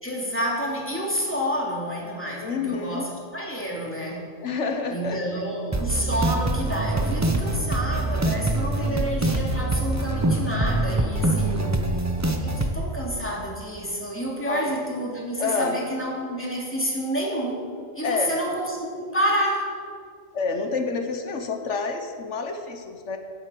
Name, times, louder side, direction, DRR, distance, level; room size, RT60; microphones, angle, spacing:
voice 1, 0.0-3.1 3.3-4.2 4.9-11.9 12.4-17.6 17.9-19.7, equal, 10° left, -4 dB, 2.7 m, -29 dB
voice 2, 2.4-3.1 4.4-5.2 11.4-11.8 14.5-14.8 15.4-15.8 18.0-18.3 20.3-23.2, left 4 dB, 70° left, 5 dB, 1.4 m, -28 dB
sound 1, 5.7-12.7, right 1 dB, 15° right, 0.6 m, -24 dB
10.5 x 7.9 x 7.7 m, 2.1 s
omnidirectional pair, 1.3 m